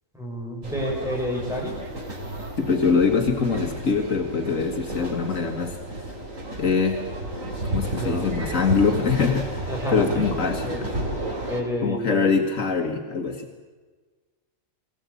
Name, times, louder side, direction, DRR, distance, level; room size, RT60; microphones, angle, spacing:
voice 1, 0.1-1.8 8.0-8.3 9.7-10.3 10.6-10.8 11.5-12.4, equal, ahead, -2 dB, 6.4 m, -29 dB
sound 1, 0.6-11.6, right 1 dB, 90° right, 3.4 m, -32 dB
voice 2, 2.6-5.8 6.6-7.1 7.6-10.9 11.8-13.5, left 5 dB, 80° left, 3 dB, 2.2 m, -23 dB
22.0 x 19.0 x 8.5 m, 1.4 s
omnidirectional pair, 1.3 m